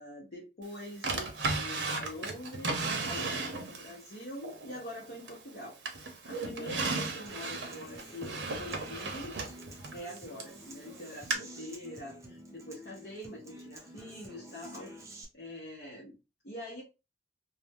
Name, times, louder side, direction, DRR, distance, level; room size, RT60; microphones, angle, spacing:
voice 1, 0.0-9.6 9.9-14.9 15.3-16.1 16.4-16.8, left 1 dB, 60° left, -5 dB, 0.8 m, -44 dB
Drawer open or close, 1.0-3.9 4.4-5.5 5.9-10.6 11.3-11.4, right 3 dB, 85° right, 0.7 m, -35 dB
Human voice / Acoustic guitar, 7.3-15.2, right 1 dB, 15° right, 0.5 m, -50 dB
2.5 x 2.1 x 3.5 m, 0.28 s
head